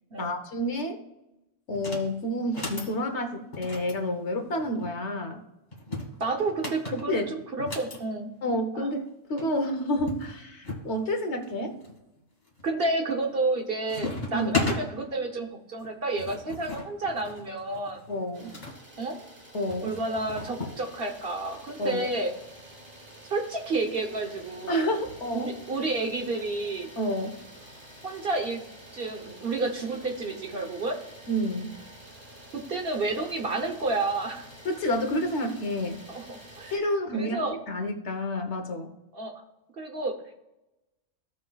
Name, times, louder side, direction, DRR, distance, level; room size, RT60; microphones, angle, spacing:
voice 1, 0.2-1.0 1.7-5.4 7.1-7.3 8.4-11.8 14.3-14.5 18.1-18.6 19.5-20.0 21.8-22.1 24.7-25.5 27.0-27.4 31.3-31.8 34.6-36.0 36.7-38.9, equal, 60° left, 5 dB, 1.2 m, -29 dB
sound 1, 1.7-2.1 2.4-2.9 3.5-4.9 5.7-8.0 9.1-9.2 9.4-9.5 10.1-10.9 11.4-11.9 12.5-12.9 13.2-13.6 13.9-14.8 15.8-18.8 19.7-20.8, left 3 dB, 35° left, 2.0 m, -35 dB
voice 2, 6.2-8.3 8.7-8.9 12.6-18.0 19.0-19.2 19.8-22.3 23.3-24.9 25.3-26.9 28.0-28.6 28.9-30.9 32.7-34.5 36.1-36.7 37.1-37.6 39.1-39.3 39.8-40.1, right 2 dB, 50° right, 3 dB, 1.1 m, -30 dB
Idling, 18.3-36.8, right 1 dB, 30° right, 1.7 m, -49 dB
16.0 x 5.9 x 2.3 m, 0.93 s
omnidirectional pair, 1.4 m